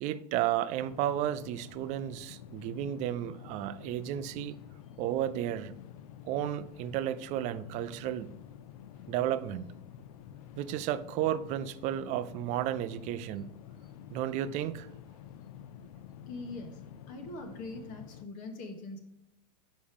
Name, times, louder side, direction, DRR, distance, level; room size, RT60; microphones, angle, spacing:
voice 1, 0.0-4.6 5.0-5.7 6.2-8.3 9.1-9.7 10.6-13.5 14.1-14.9, right 12 dB, 35° right, 0.4 m, -33 dB
sound 1, 0.8-18.3, left 9 dB, 60° left, 0.5 m, -49 dB
voice 2, 16.3-19.0, left 2 dB, 40° left, 1.3 m, -42 dB
5.3 x 5.0 x 5.1 m
hypercardioid pair, 130°, 21 cm